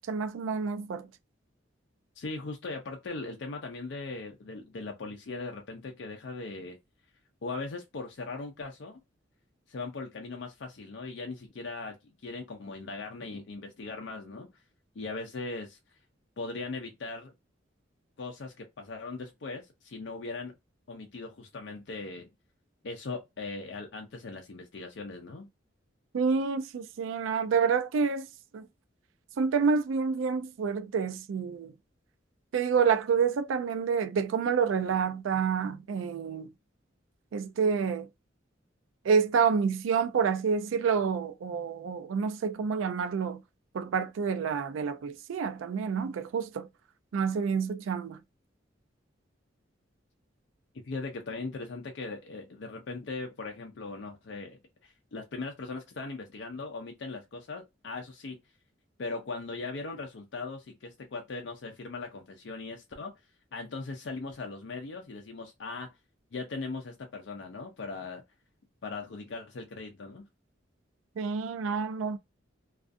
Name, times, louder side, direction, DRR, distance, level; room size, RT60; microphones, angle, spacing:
voice 1, 0.1-1.1 26.1-28.3 28.5-28.6 29.4-31.7 32.5-36.5 37.3-38.1 39.0-43.4 43.7-46.7 47.1-48.2 71.2-72.2, right 6 dB, 85° right, 0.3 m, -28 dB
voice 2, 2.2-6.8 7.4-9.0 9.7-14.5 15.0-15.8 16.4-17.3 18.2-20.5 20.9-22.3 22.8-25.5 50.9-58.4 59.0-63.1 63.5-65.9 66.3-68.2 68.8-70.3, left 3 dB, 65° left, 0.5 m, -39 dB
2.4 x 2.3 x 2.4 m
head